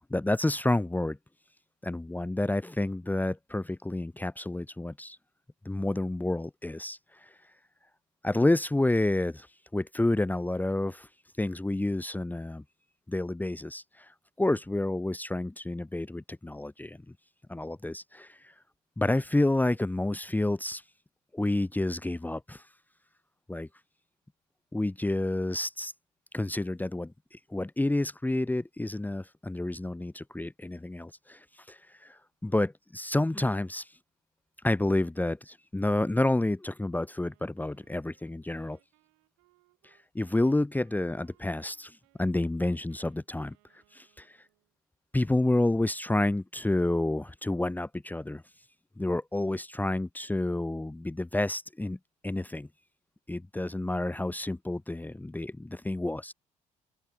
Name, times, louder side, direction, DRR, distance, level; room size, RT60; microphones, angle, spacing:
voice 1, 0.1-1.2 1.8-5.2 5.6-7.4 8.2-9.5 9.7-11.1 11.4-12.6 13.1-17.0 17.5-18.5 19.0-20.8 21.3-22.7 23.5-23.7 24.7-25.9 26.3-34.0 34.6-38.8 39.8-44.4 45.1-48.4 49.0-52.0 52.2-52.7 53.3-56.3, left 2 dB, 10° left, 1.3 m, -29 dB
Wind instrument woodwind instrument, 37.1-44.7, right 35 dB, 70° right, 6.3 m, -68 dB
open air
figure-of-eight pair, 50°, 18 cm